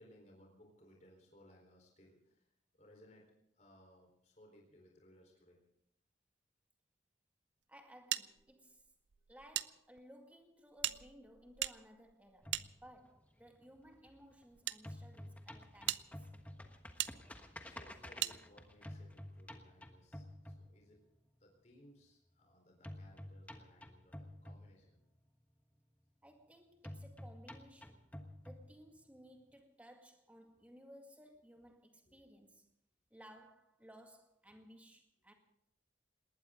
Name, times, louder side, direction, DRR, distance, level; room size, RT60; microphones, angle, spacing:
voice 1, 0.0-2.5 2.7-3.2 3.6-5.6 17.3-21.0 21.4-25.0 32.1-32.2, equal, 40° left, 4.2 m, -63 dB
voice 2, 7.7-8.8 9.3-16.3 26.2-28.1 28.4-32.7 33.1-35.3, equal, 10° right, 2.2 m, -59 dB
sound 1, 8.1-9.7 10.0-10.1 10.8-13.3 14.1-14.8 15.4-15.5 15.9-16.0 17.0-17.1 18.2-18.4, right 13 dB, 75° right, 0.5 m, -40 dB
sound 2, 12.4-14.4 14.7-21.2 22.8-25.2 26.8-29.2, left 1 dB, 10° left, 1.3 m, -51 dB
20.0 x 19.0 x 3.8 m
head